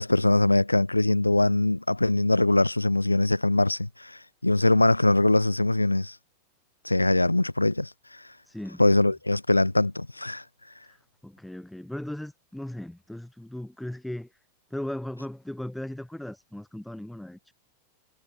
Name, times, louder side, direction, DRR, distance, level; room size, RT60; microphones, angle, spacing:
voice 1, 0.0-6.1 6.8-7.9 8.8-10.4, left 2 dB, 85° left, 0.4 m, -22 dB
voice 2, 8.4-9.1 10.9-14.3 14.7-17.5, left 1 dB, 5° left, 6.2 m, -37 dB
figure-of-eight pair, 90°, 0 cm